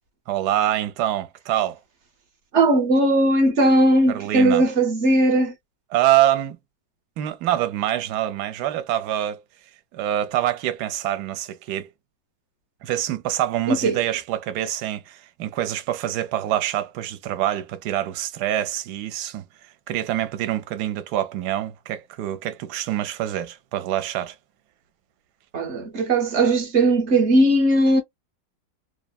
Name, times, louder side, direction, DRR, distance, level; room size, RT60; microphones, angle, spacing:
voice 1, 0.3-1.8 4.1-4.6 5.9-6.6 7.2-9.4 9.9-11.9 12.8-19.4 19.9-24.4, right 12 dB, 75° right, 1.1 m, -25 dB
voice 2, 2.5-5.5 13.7-14.0 25.5-28.0, right 1 dB, 50° right, 0.9 m, -18 dB
3.2 x 2.0 x 2.3 m
omnidirectional pair, 1.9 m